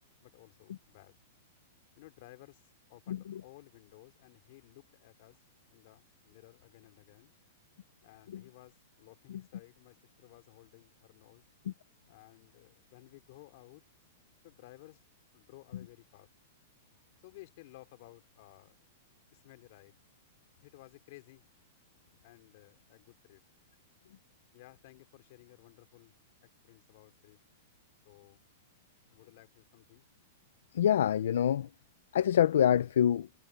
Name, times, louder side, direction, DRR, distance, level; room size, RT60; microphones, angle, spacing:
voice 1, 0.2-1.1 2.0-5.4 5.7-7.3 8.0-11.4 12.1-13.8 14.4-15.0 15.3-16.3 17.2-18.8 19.3-20.0 20.6-21.4 22.2-23.4 24.5-26.1 26.4-27.4 28.0-28.4 29.1-30.1, left 19 dB, 45° left, 3.1 m, -56 dB
voice 2, 3.1-3.4 8.3-8.4 30.7-31.7 32.1-33.3, left 10 dB, 80° left, 0.7 m, -26 dB
supercardioid pair, 170°, 0 cm